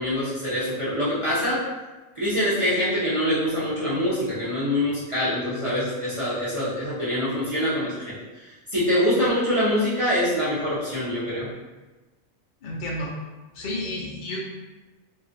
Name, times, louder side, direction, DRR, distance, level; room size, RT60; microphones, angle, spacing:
voice 1, 0.0-1.6 2.2-8.2 8.7-11.5, left 1 dB, 40° right, -10 dB, 0.4 m, -24 dB
voice 2, 12.6-13.1 13.5-14.4, left 1 dB, 80° left, -3 dB, 0.4 m, -31 dB
2.5 x 2.4 x 2.5 m, 1.2 s
omnidirectional pair, 1.4 m